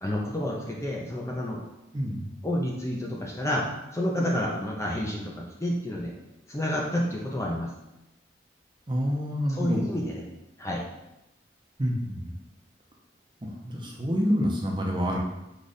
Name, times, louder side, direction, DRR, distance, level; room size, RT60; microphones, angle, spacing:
voice 1, 0.0-1.6 2.4-3.7 3.9-6.1 6.5-7.7 9.5-10.2 10.6-10.8, left 1 dB, 15° left, -2 dB, 0.5 m, -29 dB
voice 2, 1.9-2.3 8.9-9.9 11.8-12.3 13.4-15.2, equal, 25° right, -1 dB, 0.6 m, -27 dB
4.9 x 2.4 x 4.1 m, 0.93 s
head